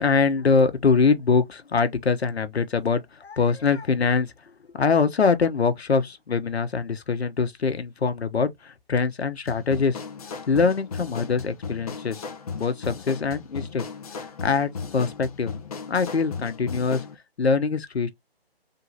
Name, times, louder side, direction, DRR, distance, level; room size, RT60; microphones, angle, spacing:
voice 1, 0.0-4.3 4.7-10.0 10.5-12.2 12.5-13.8 14.4-15.5 15.9-17.0 17.4-18.1, left 5 dB, 80° left, 1.1 m, -23 dB
sound 1, 9.5-17.1, left 5 dB, 35° left, 0.8 m, -36 dB
3.8 x 2.8 x 3.9 m
hypercardioid pair, 160°, 31 cm